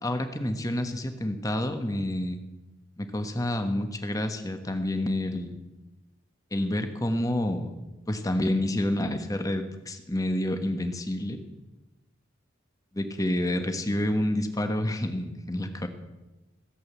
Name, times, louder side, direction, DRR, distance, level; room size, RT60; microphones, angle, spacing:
voice 1, 0.0-2.4 3.0-5.6 6.5-7.7 8.1-11.4 12.9-15.9, left 1 dB, 20° left, 7 dB, 1.2 m, -28 dB
16.0 x 8.1 x 8.1 m, 1.1 s
head